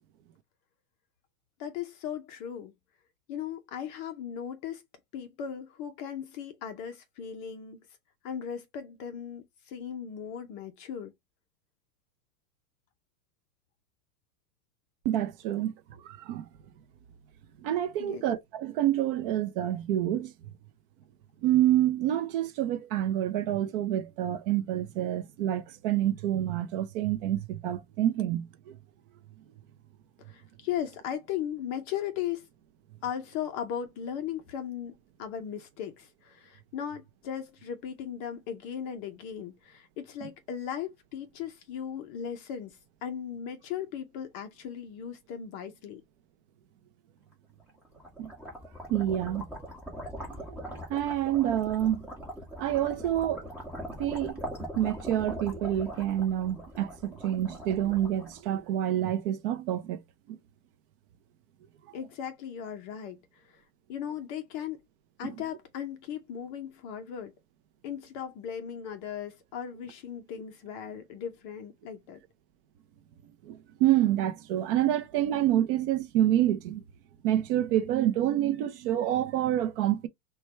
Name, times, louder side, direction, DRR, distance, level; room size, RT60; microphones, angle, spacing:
voice 1, 1.6-2.7 3.3-4.8 5.1-7.8 8.2-11.1 18.0-18.2 30.2-32.5 33.0-46.0 61.9-63.6 63.9-64.8 65.2-67.3 67.8-72.2, left 9 dB, 35° left, 0.5 m, -37 dB
voice 2, 15.0-15.7 16.0-16.4 17.6-20.3 21.4-28.8 48.2-48.3 48.9-49.5 50.9-52.1 52.6-53.4 54.0-54.4 54.8-60.0 65.2-65.3 73.5-76.8 77.2-80.1, right 12 dB, 45° right, 0.5 m, -27 dB
sound 1, 47.7-58.9, equal, 5° right, 1.2 m, -41 dB
4.3 x 2.2 x 3.2 m
supercardioid pair, 150°, 41 cm